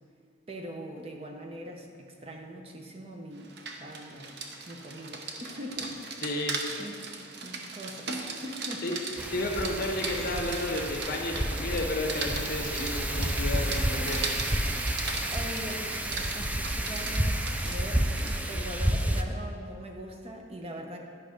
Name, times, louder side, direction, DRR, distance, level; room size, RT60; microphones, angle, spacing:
voice 1, 0.5-4.4 4.7-6.0 6.4-7.0 7.4-9.0 15.3-21.0, equal, 30° right, 2 dB, 0.8 m, -42 dB
Rain, 3.4-18.5, right 4 dB, 60° right, 0.8 m, -38 dB
voice 2, 6.2-6.6 8.8-9.0 9.3-14.2, left 2 dB, 55° left, 1 dB, 1.2 m, -32 dB
Wind, 9.2-19.2, right 1 dB, 10° right, 0.4 m, -30 dB
10.5 x 5.6 x 5.1 m, 2.2 s
head